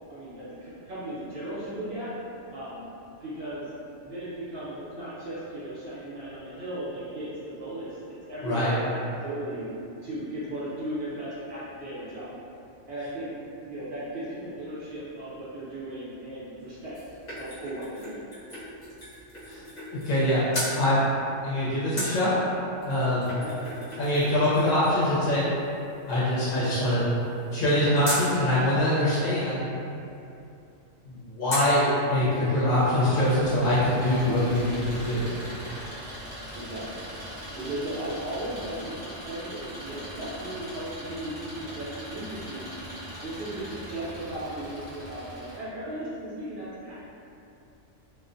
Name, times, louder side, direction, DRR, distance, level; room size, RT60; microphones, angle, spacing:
voice 1, 0.1-2.1 2.5-2.8 3.2-3.7 4.0-9.6 10.0-12.4 12.9-13.3 13.6-16.9 17.3-18.3 23.3-23.5 34.6-34.7 36.5-37.0 37.6-42.7 43.2-46.9, right 1 dB, 60° right, -11 dB, 1.0 m, -36 dB
voice 2, 8.4-8.7 19.5-19.6 19.9-21.0 21.4-22.4 22.8-23.3 24.0-25.5 26.1-27.0 27.5-29.7 31.0-35.3, left 1 dB, 70° left, -10 dB, 0.8 m, -24 dB
sound 1, 16.6-20.2 20.5-20.8 22.0-28.3 31.5-31.8 32.3-32.4 32.6-33.6 33.9-34.0, left 1 dB, 45° left, 0.8 m, -38 dB
Engine, 33.0-45.6, equal, 15° right, 0.6 m, -41 dB
2.4 x 2.0 x 2.5 m, 2.7 s
omnidirectional pair, 1.3 m